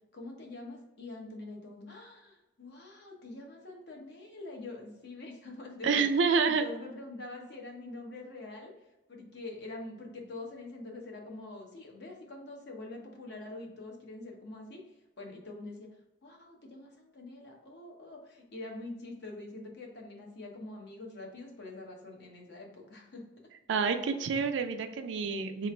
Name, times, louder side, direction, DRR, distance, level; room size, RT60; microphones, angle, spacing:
voice 1, 0.1-6.1 6.4-8.7 9.1-14.8 15.2-15.9 16.2-23.3, left 2 dB, 60° left, 0 dB, 0.8 m, -45 dB
voice 2, 5.8-6.7 23.7-25.7, right 5 dB, 75° right, 8 dB, 0.4 m, -28 dB
3.0 x 2.4 x 4.2 m, 1.0 s
head